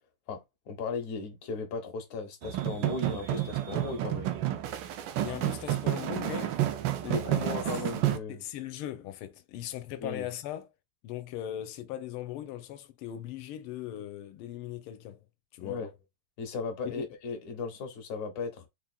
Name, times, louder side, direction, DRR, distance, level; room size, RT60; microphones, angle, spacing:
voice 1, 0.3-4.3 7.1-8.4 10.0-10.3 15.6-15.9 16.4-18.7, left 4 dB, 55° left, 1.3 m, -36 dB
sound 1, 2.4-8.2, right 13 dB, 75° right, 1.3 m, -30 dB
voice 2, 5.2-6.6 7.0-7.5 8.3-10.7 11.0-15.2 15.5-15.9 16.8-17.0, left 12 dB, 85° left, 1.5 m, -39 dB
4.5 x 3.5 x 2.2 m
omnidirectional pair, 2.3 m